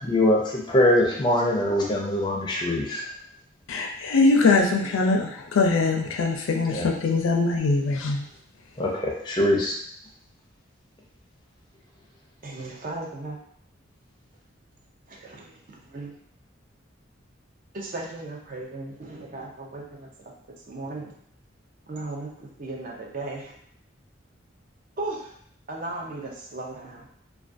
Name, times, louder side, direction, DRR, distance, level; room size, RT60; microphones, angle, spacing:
voice 1, 0.0-3.0 6.7-6.9 8.8-9.7, left 1 dB, 20° left, -2 dB, 0.4 m, -23 dB
voice 2, 3.7-8.2, left 3 dB, 90° left, 3 dB, 0.4 m, -22 dB
voice 3, 12.4-13.4 15.1-16.1 17.7-20.1 20.7-21.1 21.9-23.5 25.0-25.3 25.7-27.1, right 2 dB, 40° right, -1 dB, 0.4 m, -36 dB
2.3 x 2.2 x 2.5 m, 0.67 s
head